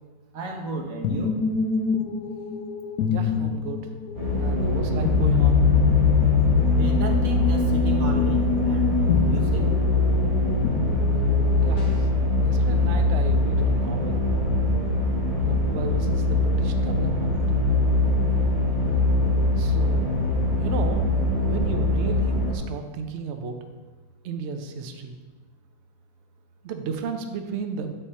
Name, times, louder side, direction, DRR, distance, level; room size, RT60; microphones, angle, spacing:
voice 1, 0.3-1.3 6.8-9.7, right 3 dB, 55° right, 2 dB, 1.3 m, -33 dB
sound 1, 1.0-11.8, left 7 dB, 75° left, 0.8 m, -25 dB
voice 2, 3.1-3.8 4.4-5.6 11.6-12.1 12.5-14.2 15.4-17.4 19.6-20.2 20.6-21.1 21.5-23.6 24.2-25.1 26.6-27.9, right 5 dB, 85° right, 6 dB, 0.6 m, -34 dB
sound 2, 4.1-22.6, left 2 dB, 20° right, 1.6 m, -22 dB
sound 3, 11.8-12.3, left 2 dB, 50° left, 1.6 m, -42 dB
8.5 x 5.4 x 4.3 m, 1.3 s
omnidirectional pair, 2.0 m